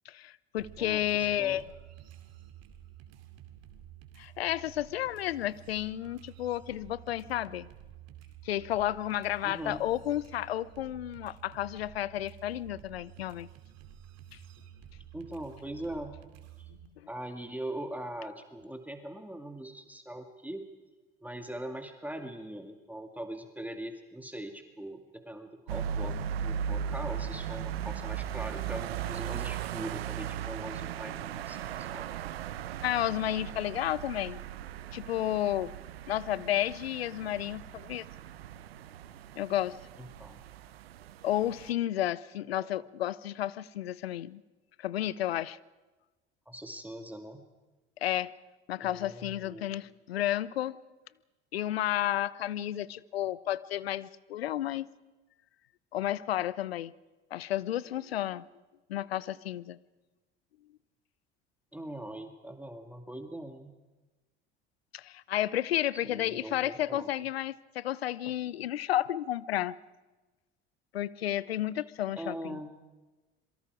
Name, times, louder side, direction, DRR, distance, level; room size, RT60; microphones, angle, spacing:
voice 1, 0.1-1.6 4.2-7.7 8.4-13.5 32.8-34.4 34.9-35.7 36.1-38.1 39.4-39.8 41.2-44.4 44.8-45.6 48.0-48.3 48.7-50.8 51.5-54.9 55.9-56.9 57.3-58.4 58.9-59.8 64.9-69.8 70.9-72.6, left 12 dB, 90° left, 20 dB, 0.6 m, -32 dB
sound 1, 0.6-16.9, right 11 dB, 60° right, 2.6 m, -51 dB
voice 2, 0.8-1.6 9.4-9.8 15.1-16.2 16.6-16.7 17.1-20.7 21.2-26.2 26.4-32.1 40.0-40.4 42.5-42.8 46.5-47.5 48.8-49.7 61.7-63.7 65.9-67.1 72.2-72.7, right 1 dB, 5° right, 5 dB, 2.2 m, -41 dB
sound 2, 25.7-41.7, right 9 dB, 85° right, 1.0 m, -38 dB
27.0 x 23.0 x 4.9 m, 1.2 s
hypercardioid pair, 65°, 30 cm